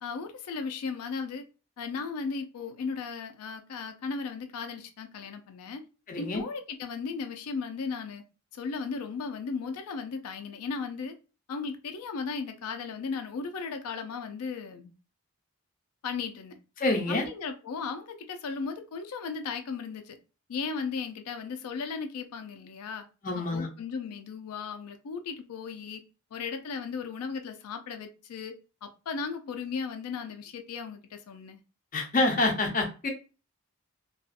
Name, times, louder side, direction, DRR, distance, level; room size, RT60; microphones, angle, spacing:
voice 1, 0.0-1.4 1.8-5.8 6.2-8.2 8.5-11.1 11.5-14.9 16.0-16.6 17.1-20.2 20.5-23.0 23.4-26.0 26.3-31.6, left 5 dB, 90° left, 0.4 m, -36 dB
voice 2, 6.1-6.4 16.8-17.3 23.2-23.7 31.9-33.1, left 2 dB, 35° left, 0.5 m, -27 dB
2.6 x 2.3 x 2.4 m
head